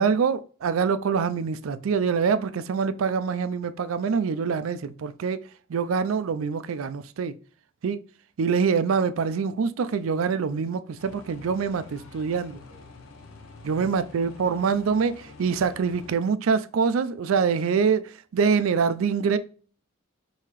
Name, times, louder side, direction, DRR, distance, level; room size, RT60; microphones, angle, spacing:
voice 1, 0.0-5.4 5.7-7.3 7.8-8.0 8.4-12.6 13.6-19.4, right 5 dB, 80° right, 0.4 m, -25 dB
sound 1, 11.0-16.2, left 3 dB, 85° left, 0.8 m, -47 dB
5.5 x 2.8 x 3.0 m
head